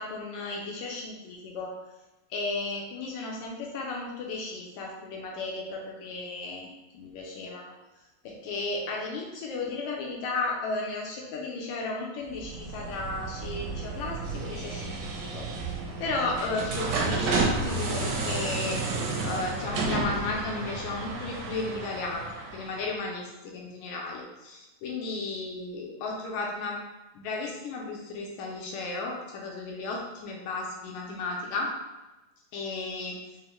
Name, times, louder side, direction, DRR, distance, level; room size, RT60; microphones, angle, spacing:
voice 1, 0.0-1.7 2.3-6.7 6.9-7.7 8.2-15.5 16.0-18.8 19.2-26.8 27.1-31.7 32.5-33.2, left 3 dB, 80° left, -1 dB, 1.8 m, -34 dB
sound 1, 12.3-23.0, right 3 dB, 80° right, 2.1 m, -32 dB
5.3 x 2.1 x 2.9 m, 1.1 s
omnidirectional pair, 3.4 m